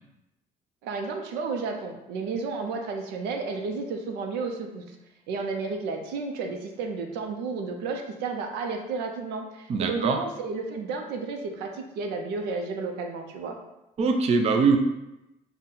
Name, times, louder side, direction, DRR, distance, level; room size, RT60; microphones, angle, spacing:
voice 1, 0.8-5.0 5.3-13.6, right 4 dB, 90° right, 4 dB, 0.5 m, -32 dB
voice 2, 9.7-10.2 14.0-14.8, right 4 dB, 40° right, 4 dB, 0.4 m, -22 dB
4.0 x 2.1 x 3.7 m, 0.94 s
cardioid pair, 110°, 17 cm